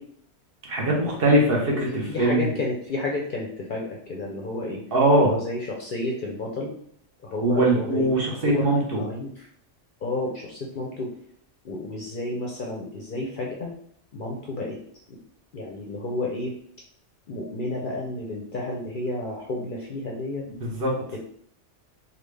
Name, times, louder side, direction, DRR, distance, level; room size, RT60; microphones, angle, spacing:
voice 1, 0.7-2.5 4.9-5.3 7.4-9.0 20.6-20.9, right 1 dB, 55° right, -2 dB, 0.9 m, -21 dB
voice 2, 2.1-4.8 5.2-6.7 7.2-8.1 8.4-9.5 10.0-11.1 11.6-13.7 14.1-14.8 15.1-15.2 15.5-16.5 17.3-20.5 21.1-21.2, left 2 dB, 55° left, -1 dB, 0.6 m, -31 dB
3.5 x 2.3 x 3.2 m, 0.62 s
omnidirectional pair, 1.3 m